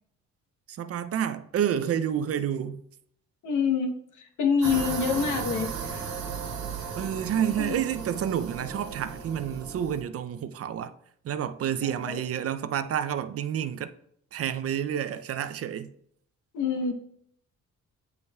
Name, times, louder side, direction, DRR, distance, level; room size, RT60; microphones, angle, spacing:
voice 1, 0.7-2.8 7.0-10.9 11.2-13.9 14.3-15.9, right 9 dB, 50° right, 0.5 m, -29 dB
voice 2, 3.4-6.2 6.8-6.9 7.6-7.8 11.8-12.2 16.5-16.9, left 6 dB, 80° left, 1.1 m, -27 dB
sound 1, 4.6-10.0, right 6 dB, 70° right, 1.4 m, -35 dB
9.0 x 5.4 x 2.3 m
cardioid pair, 90°, 30 cm